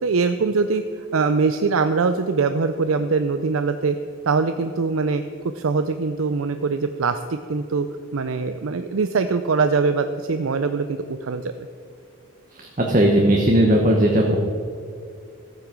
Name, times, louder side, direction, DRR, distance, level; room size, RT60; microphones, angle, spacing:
voice 1, 0.0-0.8 1.1-4.0 4.3-5.2 5.5-7.9 8.1-11.7, right 4 dB, 85° right, 9 dB, 0.5 m, -22 dB
voice 2, 12.5-14.4, right 1 dB, 40° right, 0 dB, 1.2 m, -17 dB
14.0 x 8.9 x 6.1 m, 2.4 s
head